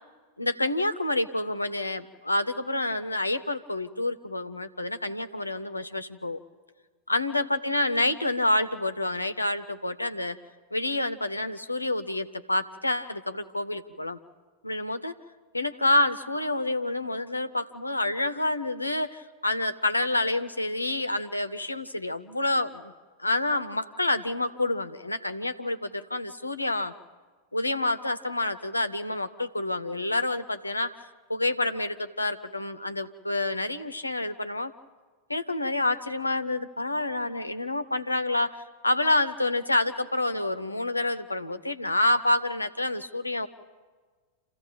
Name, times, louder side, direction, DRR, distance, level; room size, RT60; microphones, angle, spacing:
voice 1, 0.4-6.4 7.1-10.4 10.7-14.2 14.6-15.1 15.5-22.9 23.2-26.9 27.5-30.9 31.3-34.7 35.3-43.5, left 2 dB, 85° left, 11 dB, 0.8 m, -28 dB
27.5 x 15.5 x 8.8 m, 1.5 s
figure-of-eight pair, 90°, 0 cm